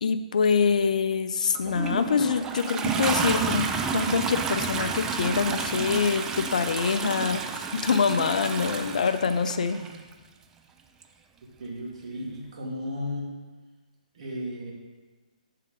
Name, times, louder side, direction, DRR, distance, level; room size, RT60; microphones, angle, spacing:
voice 1, 0.0-3.7 3.9-9.8, left 5 dB, 65° left, 10 dB, 0.4 m, -25 dB
Toilet flush, 1.5-10.0 11.0-11.1, right 5 dB, 10° right, 0.3 m, -30 dB
voice 2, 11.6-13.3 14.1-14.7, left 1 dB, 50° right, -2 dB, 1.9 m, -34 dB
9.9 x 3.8 x 3.8 m, 1.3 s
hypercardioid pair, 150°, 4 cm